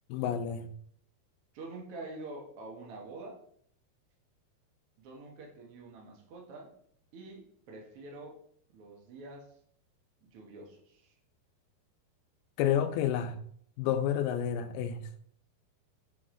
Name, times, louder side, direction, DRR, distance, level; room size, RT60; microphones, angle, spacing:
voice 1, 0.1-0.7 12.6-13.4 13.8-15.0, left 9 dB, 85° left, 10 dB, 2.4 m, -30 dB
voice 2, 1.5-3.4 5.0-6.7 7.1-8.4 8.7-9.5 10.2-11.1, right 2 dB, 65° right, -1 dB, 1.4 m, -46 dB
7.7 x 4.0 x 3.8 m, 0.63 s
omnidirectional pair, 4.6 m